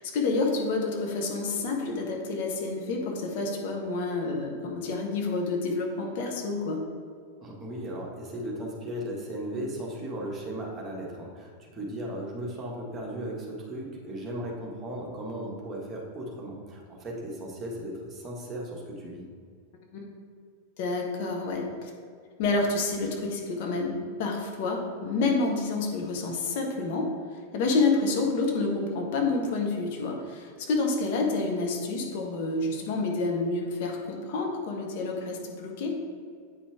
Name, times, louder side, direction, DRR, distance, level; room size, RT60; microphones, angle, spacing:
voice 1, 0.0-6.8 19.9-20.1 20.8-21.9 22.4-27.1 27.5-36.0, left 3 dB, 50° left, 1 dB, 1.1 m, -28 dB
voice 2, 7.4-19.3, right 1 dB, 20° right, -4 dB, 1.7 m, -36 dB
8.6 x 5.1 x 3.5 m, 2.1 s
figure-of-eight pair, 90°, 0 cm